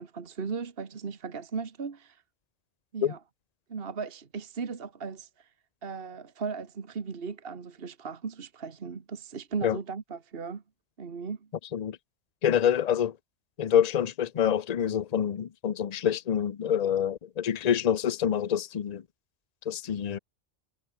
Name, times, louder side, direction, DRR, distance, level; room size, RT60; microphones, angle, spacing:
voice 1, 0.0-2.2 2.9-3.2 3.7-5.5 5.8-10.6 11.0-11.5, right 5 dB, 55° right, 1.6 m, -37 dB
voice 2, 12.4-13.2 13.6-19.0 19.7-20.2, left 9 dB, 40° left, 0.7 m, -26 dB
omnidirectional pair, 1.2 m